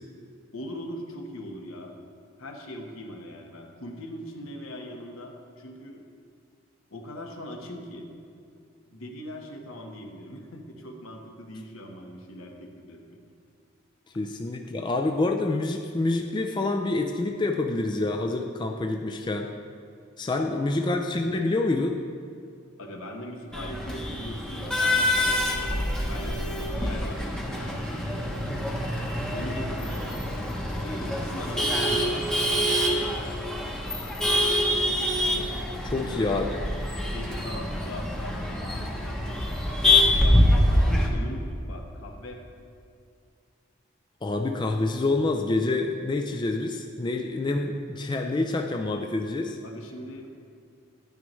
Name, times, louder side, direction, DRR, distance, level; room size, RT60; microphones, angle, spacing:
voice 1, 0.5-1.9 2.4-6.0 6.9-8.1 8.9-13.2 20.4-20.9 22.8-28.3 29.3-30.0 30.8-33.4 35.9-36.3 37.0-39.4 40.2-42.4 49.6-50.3, left 1 dB, 80° left, 2 dB, 1.2 m, -41 dB
voice 2, 14.1-19.5 20.2-22.0 35.8-36.6 44.2-49.6, left 2 dB, 20° left, 4 dB, 0.3 m, -27 dB
Male speech man speaking / Laughter / Chatter, 23.5-41.1, left 1 dB, 5° left, 0.8 m, -25 dB
10.0 x 9.4 x 3.1 m, 2.4 s
head